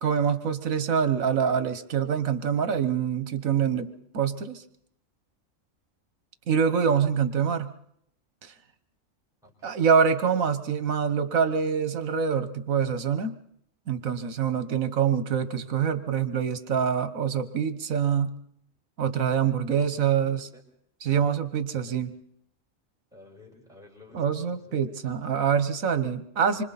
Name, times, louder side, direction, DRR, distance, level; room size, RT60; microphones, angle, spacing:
voice 1, 0.0-4.6 6.5-7.7 8.4-8.5 9.6-13.4 13.9-18.3 19.0-20.4 21.0-22.1 24.1-26.6, right 7 dB, 80° right, 11 dB, 1.6 m, -25 dB
voice 2, 9.4-9.8 19.7-20.6 21.7-22.1 23.1-25.0 26.5-26.7, left 3 dB, ahead, 0 dB, 5.1 m, -52 dB
27.0 x 24.5 x 4.2 m, 0.69 s
omnidirectional pair, 1.4 m